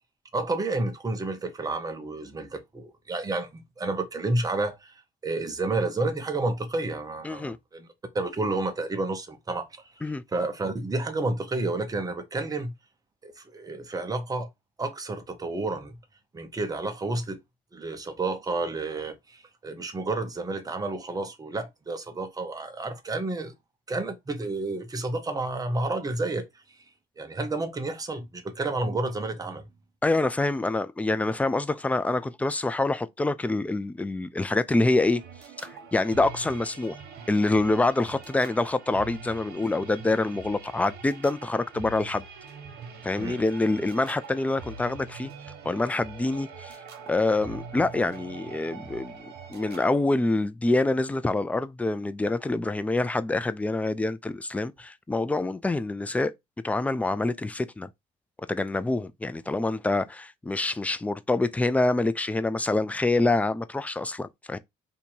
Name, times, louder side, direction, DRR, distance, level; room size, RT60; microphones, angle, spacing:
voice 1, 0.3-7.9 8.1-9.7 10.0-10.1 10.3-12.7 13.2-14.5 14.8-16.0 16.3-17.4 17.7-23.5 23.9-26.4 27.2-29.6 43.2-43.4, right 2 dB, 20° right, 0.8 m, -30 dB
voice 2, 7.2-7.6 10.0-10.2 30.0-35.2 35.9-37.0 37.3-42.2 43.0-45.3 45.7-46.8 47.1-56.3 56.6-57.9 58.5-64.6, left 2 dB, 10° left, 0.3 m, -26 dB
sound 1, 34.9-49.9, right 5 dB, 75° right, 1.2 m, -43 dB
2.8 x 2.7 x 4.3 m
cardioid pair, 110°, 17 cm